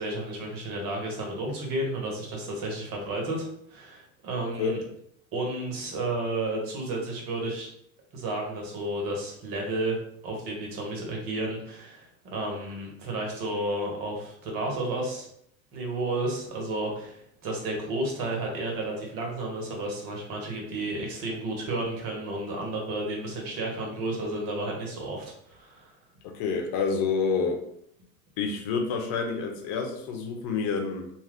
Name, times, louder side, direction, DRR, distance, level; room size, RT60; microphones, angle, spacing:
voice 1, 0.0-4.8 5.3-7.7 8.1-15.3 15.7-25.9, right 2 dB, 50° right, 0 dB, 1.3 m, -32 dB
voice 2, 26.2-27.6 28.4-31.1, left 5 dB, 55° left, 3 dB, 0.8 m, -28 dB
2.6 x 2.3 x 3.5 m, 0.70 s
hypercardioid pair, 95°, 43 cm